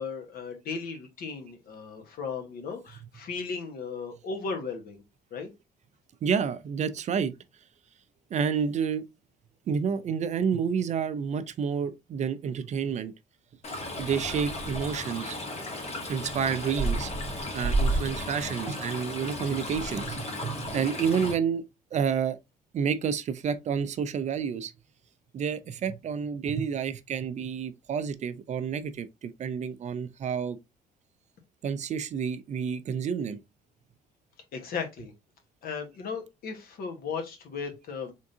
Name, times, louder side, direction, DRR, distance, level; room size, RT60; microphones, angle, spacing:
voice 1, 0.0-5.0 5.3-5.5 34.5-35.1 35.6-38.1, left 5 dB, 65° left, 1.3 m, -36 dB
voice 2, 6.2-7.3 8.3-9.1 9.7-13.1 14.0-15.4 16.1-17.1 17.5-22.4 22.7-24.7 25.3-30.6 31.6-33.4, right 7 dB, 45° right, 0.5 m, -29 dB
Stream, 13.6-21.3, right 1 dB, 40° left, 1.4 m, -32 dB
3.7 x 3.5 x 2.7 m
cardioid pair, 110°, 17 cm